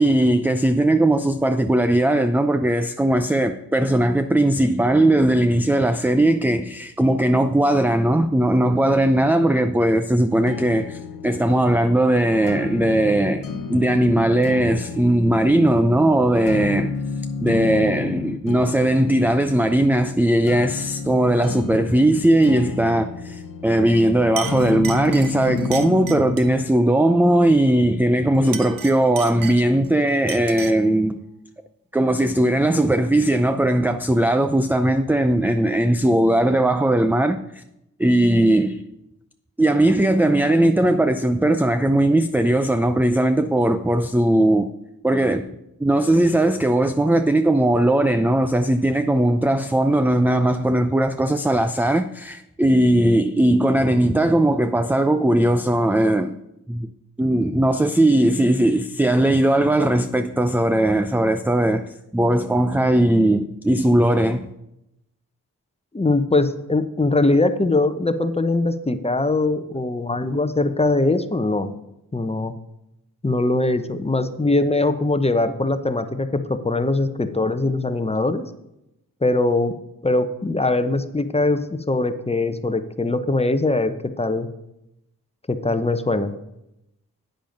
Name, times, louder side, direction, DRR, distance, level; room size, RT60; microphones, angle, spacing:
voice 1, 0.0-16.9 17.4-31.2 31.9-37.6 38.0-38.8 39.6-44.7 45.0-45.5 45.8-56.4 56.7-56.9 57.2-61.8 62.1-64.5, right 1 dB, 5° right, 0.5 m, -19 dB
sound 1, 10.5-26.5, left 5 dB, 60° left, 1.0 m, -32 dB
Chink clink, 23.9-24.0 24.4-26.6 28.3-29.9 30.3-30.9, right 7 dB, 65° right, 0.9 m, -34 dB
voice 2, 65.9-71.7 72.1-72.5 73.2-78.5 79.2-79.7 80.0-84.5 85.5-86.3, left 2 dB, 15° left, 0.9 m, -21 dB
8.9 x 7.6 x 5.2 m
cardioid pair, 50°, 37 cm